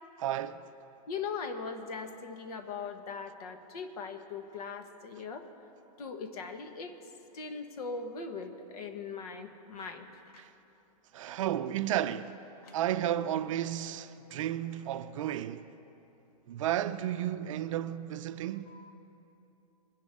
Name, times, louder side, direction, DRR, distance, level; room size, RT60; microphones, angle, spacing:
voice 1, 0.2-0.6 10.4-10.5 11.1-12.4 12.7-15.7 16.5-18.7, right 11 dB, 50° right, 0.5 m, -33 dB
voice 2, 1.1-5.5 6.0-7.0 7.3-10.1 10.3-10.4 12.6-12.7 18.7-18.9, left 5 dB, 65° left, 1.4 m, -40 dB
22.0 x 10.5 x 3.6 m
hypercardioid pair, 155°, 20 cm